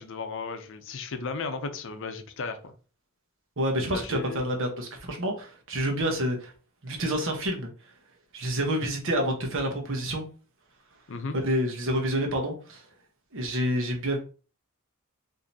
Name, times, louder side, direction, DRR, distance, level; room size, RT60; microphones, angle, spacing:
voice 1, 0.0-2.7 3.9-4.4 11.1-11.4, left 4 dB, 60° left, 0.6 m, -35 dB
voice 2, 3.6-6.5 6.8-7.7 8.3-10.3 11.3-12.8 13.3-14.2, equal, 60° right, 1.1 m, -28 dB
4.9 x 2.7 x 2.8 m
head